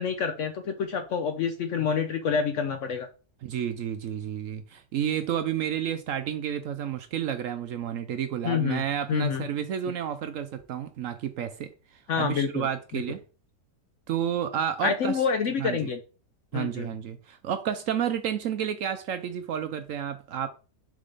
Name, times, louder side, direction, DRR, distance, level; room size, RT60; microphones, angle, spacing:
voice 1, 0.0-3.1 8.4-8.8 9.1-9.5 12.1-12.7 14.8-16.0 16.5-16.9, left 6 dB, 65° left, 0.8 m, -27 dB
voice 2, 3.4-11.7 12.2-13.2 14.1-15.2 15.6-15.9 16.5-20.5, right 9 dB, 65° right, 0.8 m, -30 dB
6.5 x 3.7 x 3.9 m
omnidirectional pair, 1.7 m